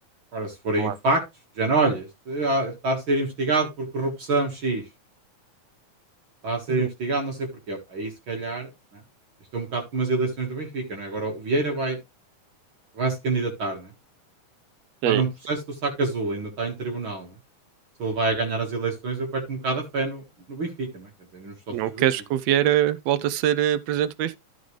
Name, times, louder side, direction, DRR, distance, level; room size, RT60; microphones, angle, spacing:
voice 1, 0.3-1.2 1.6-4.8 6.4-9.0 9.5-12.0 12.9-13.9 15.0-17.4 18.0-22.1, right 3 dB, 45° right, 2.3 m, -27 dB
voice 2, 21.7-24.4, right 11 dB, 75° right, 1.6 m, -23 dB
13.5 x 5.2 x 3.2 m
omnidirectional pair, 3.5 m